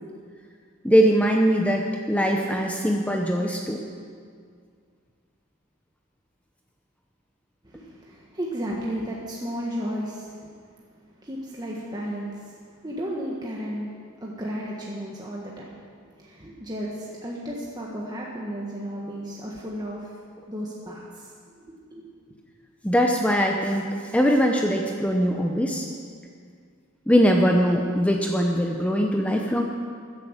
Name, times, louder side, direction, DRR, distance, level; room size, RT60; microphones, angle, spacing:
voice 1, 0.8-3.8 22.8-25.9 27.1-29.6, equal, 5° left, 1 dB, 0.8 m, -21 dB
voice 2, 7.6-10.5 11.2-13.9 14.2-15.8 16.2-20.2 20.5-22.1, equal, 20° right, -4 dB, 1.5 m, -34 dB
14.5 x 10.5 x 7.4 m, 2.1 s
head